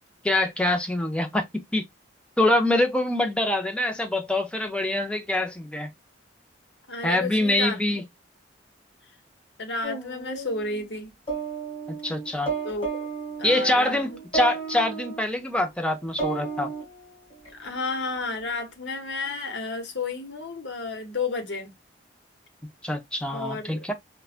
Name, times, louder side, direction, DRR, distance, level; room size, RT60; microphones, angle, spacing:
voice 1, 0.2-1.8 2.4-5.9 7.0-8.0 12.0-12.5 13.4-16.7 22.8-23.9, left 1 dB, 5° left, 0.6 m, -25 dB
voice 2, 6.9-7.8 9.6-11.1 12.6-13.1 13.4-14.2 17.5-21.7 23.3-23.8, left 3 dB, 70° left, 1.0 m, -32 dB
sound 1, 9.8-11.0 11.3-15.2 15.9-17.5, right 4 dB, 30° left, 2.2 m, -33 dB
4.6 x 2.2 x 2.4 m
head